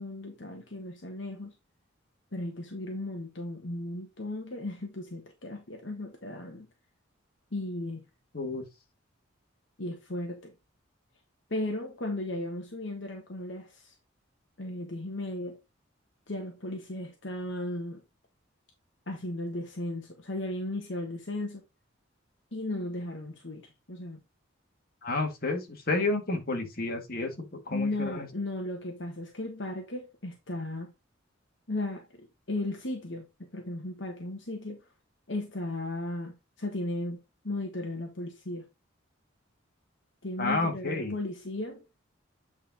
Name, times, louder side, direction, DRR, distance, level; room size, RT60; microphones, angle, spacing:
voice 1, 0.0-1.5 2.3-6.7 7.5-8.0 9.8-10.5 11.5-13.9 14.6-15.6 16.3-18.0 19.1-21.6 22.5-24.2 27.7-30.9 31.7-33.3 33.5-34.8 35.3-38.6 40.2-41.8, left 1 dB, 65° left, 1.4 m, -36 dB
voice 2, 8.3-8.6 25.0-28.3 40.4-41.2, left 2 dB, 50° left, 2.0 m, -30 dB
8.5 x 4.5 x 3.8 m
head